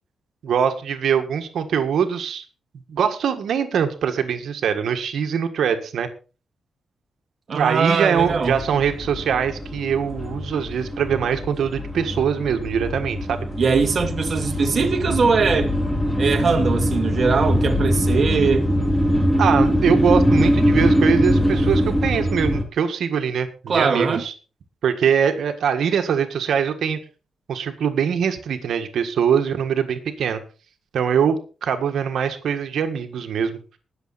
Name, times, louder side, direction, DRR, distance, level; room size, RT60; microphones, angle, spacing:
voice 1, 0.4-2.4 2.9-6.1 7.5-13.5 18.3-18.5 19.4-24.3 24.8-27.0 27.5-30.4 30.9-33.6, right 7 dB, 70° right, 7 dB, 1.7 m, -22 dB
voice 2, 7.5-8.6 13.6-15.7 16.2-18.7 23.7-24.2, right 5 dB, 40° right, 4 dB, 1.9 m, -21 dB
sound 1, 8.2-22.6, equal, 5° left, 2.6 m, -22 dB
20.0 x 7.2 x 4.2 m, 0.35 s
wide cardioid pair, 140°, 0 cm